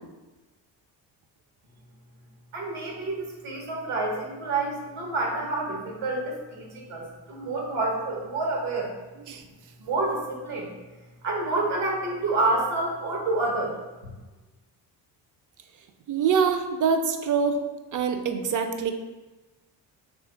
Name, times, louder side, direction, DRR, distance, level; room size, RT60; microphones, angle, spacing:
voice 1, 2.5-8.9 9.8-10.7 11.2-13.7, right 2 dB, 75° right, -1 dB, 1.0 m, -28 dB
voice 2, 16.1-17.6 17.9-18.9, right 6 dB, 40° right, 7 dB, 0.5 m, -24 dB
3.0 x 2.5 x 3.7 m, 1.1 s
supercardioid pair, 55°, 48 cm